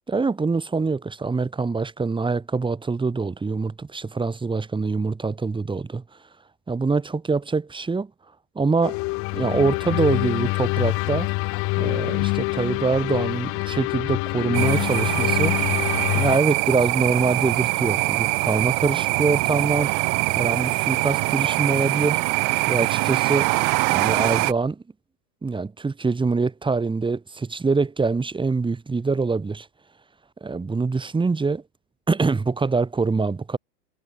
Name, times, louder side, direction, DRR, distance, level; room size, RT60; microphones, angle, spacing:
voice 1, 0.1-6.0 6.7-8.1 8.5-9.0 9.3-11.3 11.8-15.6 16.1-19.9 20.3-22.2 22.7-23.5 23.9-24.8 25.4-29.7 30.4-31.6 32.1-33.6, right 4 dB, 10° right, 4.4 m, -24 dB
sound 1, 8.8-16.4, left 27 dB, 30° left, 0.6 m, -25 dB
sound 2, 14.5-24.5, right 29 dB, 35° right, 1.1 m, -23 dB
hypercardioid pair, 120°, 48 cm